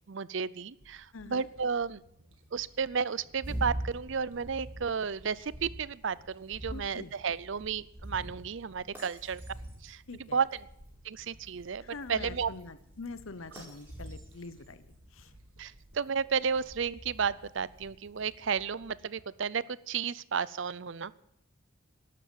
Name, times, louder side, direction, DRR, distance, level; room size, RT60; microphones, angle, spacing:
voice 1, 0.1-2.0 2.5-9.4 9.8-10.5 11.0-11.8 12.1-12.5 15.6-21.1, right 6 dB, 60° right, 19 dB, 0.5 m, -33 dB
sound 1, 0.8-19.2, right 1 dB, 85° right, 2.0 m, -60 dB
voice 2, 1.1-1.5 6.7-7.1 10.1-10.4 11.8-15.3, left 3 dB, 75° left, 14 dB, 0.9 m, -45 dB
sound 2, 3.3-18.5, right 1 dB, 10° right, 4.8 m, -45 dB
12.0 x 12.0 x 9.0 m, 0.76 s
head